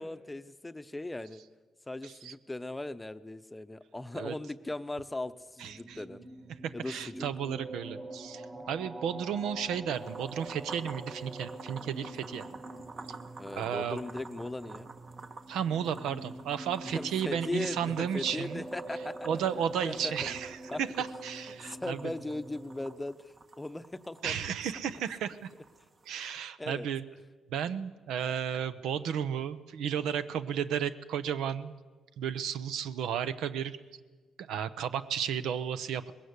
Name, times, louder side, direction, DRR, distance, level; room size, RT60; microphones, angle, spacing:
voice 1, 0.0-1.4 1.9-6.2 6.7-7.3 8.5-8.7 13.4-14.9 16.8-19.3 19.8-20.1 20.7-20.8 21.6-24.5 26.6-26.9, left 2 dB, 15° left, 11 dB, 0.8 m, -38 dB
voice 2, 5.6-6.0 6.6-12.4 13.6-14.0 15.5-18.6 19.3-22.0 24.2-25.4 26.1-27.0 27.5-31.7 32.2-33.8 34.5-36.1, right 8 dB, 85° right, 13 dB, 0.8 m, -33 dB
sound 1, 5.7-23.0, right 2 dB, 25° right, 1.3 m, -45 dB
sound 2, 9.9-26.4, right 3 dB, 40° right, 1.4 m, -50 dB
20.0 x 16.5 x 8.2 m, 1.4 s
cardioid pair, 90°, 0 cm